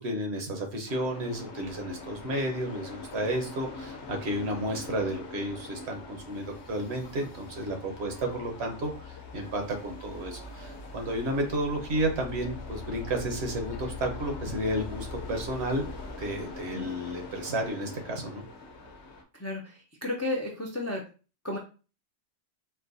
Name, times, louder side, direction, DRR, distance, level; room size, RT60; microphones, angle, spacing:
voice 1, 0.0-15.9 16.2-18.4, right 1 dB, 65° right, 3 dB, 1.1 m, -32 dB
sound 1, 0.9-19.2, left 3 dB, 75° left, 1.0 m, -44 dB
sound 2, 3.1-17.1, left 4 dB, 30° right, 0.5 m, -45 dB
voice 2, 19.3-21.0 21.4-21.6, left 2 dB, 25° left, -1 dB, 0.3 m, -33 dB
4.4 x 2.2 x 2.6 m, 0.34 s
omnidirectional pair, 1.2 m